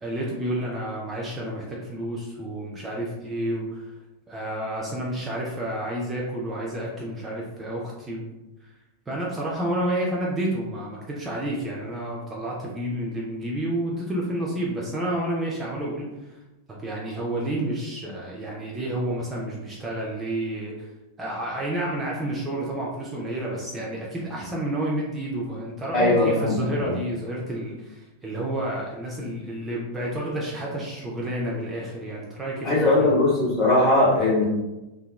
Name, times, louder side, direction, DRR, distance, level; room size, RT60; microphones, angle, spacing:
voice 1, 0.0-3.9 4.3-8.3 9.1-16.4 16.7-20.9 21.2-33.1, right 1 dB, 15° right, -4 dB, 0.5 m, -30 dB
voice 2, 25.9-26.9 32.6-34.4, left 2 dB, 25° left, -5 dB, 1.0 m, -20 dB
2.8 x 2.2 x 2.2 m, 1.0 s
figure-of-eight pair, 90°, 0 cm